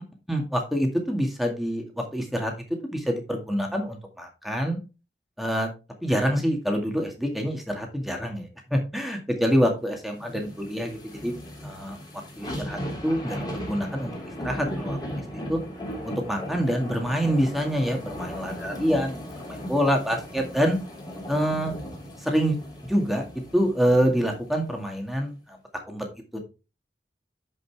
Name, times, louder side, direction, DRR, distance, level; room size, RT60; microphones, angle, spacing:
voice 1, 0.3-2.5 2.9-4.8 5.4-5.7 6.0-11.3 11.6-12.0 12.4-14.1 14.4-15.0 15.3-15.6 16.0-19.2 19.5-20.8 21.3-21.8 22.2-23.2 23.5-25.3 25.9-26.1, equal, ahead, 2 dB, 2.0 m, -26 dB
sound 1, 10.1-24.6 25.0-25.1, equal, 25° left, 3.1 m, -37 dB
10.5 x 5.4 x 3.5 m, 0.29 s
head